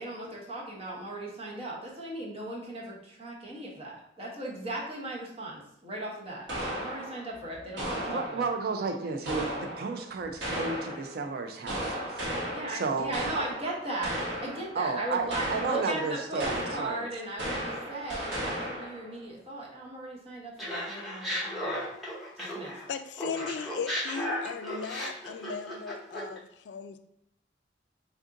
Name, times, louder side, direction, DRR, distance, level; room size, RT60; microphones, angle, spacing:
voice 1, 0.0-6.5 6.8-8.5 12.5-14.1 14.4-21.9 22.4-22.8 23.3-23.5, right 2 dB, 35° right, -4 dB, 1.0 m, -37 dB
sound 1, 6.5-8.6 9.3-11.2 11.7-14.8 15.3-16.1 16.4-19.1, right 1 dB, 75° right, 1.2 m, -35 dB
voice 2, 8.1-12.3 12.7-13.3 14.8-17.1, right 4 dB, 60° right, 5 dB, 0.4 m, -32 dB
Laughter, 20.6-22.9 23.2-26.4, equal, ahead, 0.9 m, -35 dB
voice 3, 22.9-27.0, left 6 dB, 70° left, 9 dB, 0.3 m, -37 dB
3.4 x 2.5 x 3.7 m, 0.78 s
head